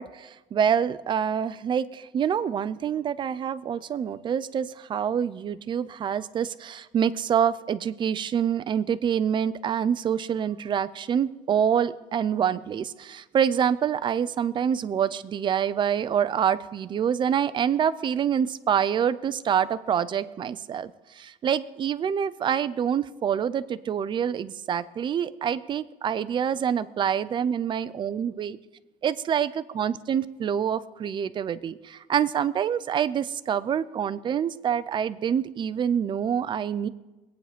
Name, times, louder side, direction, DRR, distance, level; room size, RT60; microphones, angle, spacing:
voice 1, 0.0-28.6 29.0-36.9, right 8 dB, 30° right, 15 dB, 0.5 m, -26 dB
21.5 x 9.1 x 5.1 m, 1.1 s
cardioid pair, 150°, 17 cm